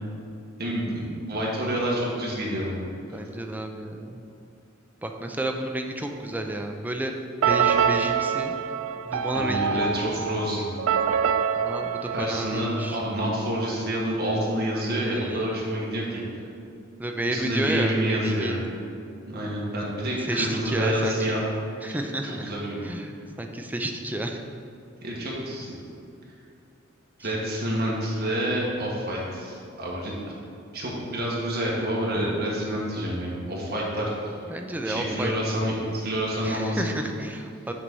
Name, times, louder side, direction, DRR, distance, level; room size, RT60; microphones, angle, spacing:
voice 1, 0.6-2.8 3.1-3.2 9.3-10.7 12.1-16.2 17.3-18.5 19.3-21.4 21.9-22.0 22.2-22.8 25.0-25.7 27.2-30.3 30.7-34.3 34.8-37.0, equal, 50° right, -4 dB, 1.6 m, -28 dB
voice 2, 3.1-4.2 5.0-7.2 7.5-8.5 9.1-9.9 11.6-13.0 15.0-15.6 17.0-18.7 20.3-21.4 21.8-22.5 22.8-24.4 27.2-27.3 34.5-35.3 36.4-37.7, right 1 dB, 10° right, 4 dB, 0.4 m, -31 dB
sound 1, 7.4-13.2, right 7 dB, 70° right, 0.3 m, -26 dB
6.1 x 4.0 x 6.2 m, 2.5 s
head